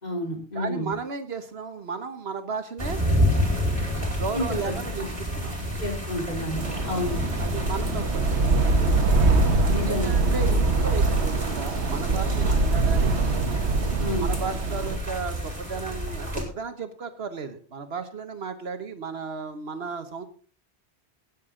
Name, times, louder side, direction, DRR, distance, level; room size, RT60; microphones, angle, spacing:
voice 1, 0.0-0.9 4.3-5.1 5.8-7.2 9.7-10.2 14.0-14.3, left 1 dB, 40° left, 0 dB, 3.4 m, -30 dB
voice 2, 0.5-3.0 4.2-5.6 7.4-8.3 9.6-13.2 14.2-20.2, right 5 dB, 70° right, 9 dB, 1.3 m, -34 dB
sound 1, 2.8-16.4, equal, 30° right, 3.6 m, -30 dB
sound 2, 6.6-15.0, right 3 dB, 85° right, 1.5 m, -23 dB
18.5 x 7.4 x 3.7 m, 0.40 s
omnidirectional pair, 1.1 m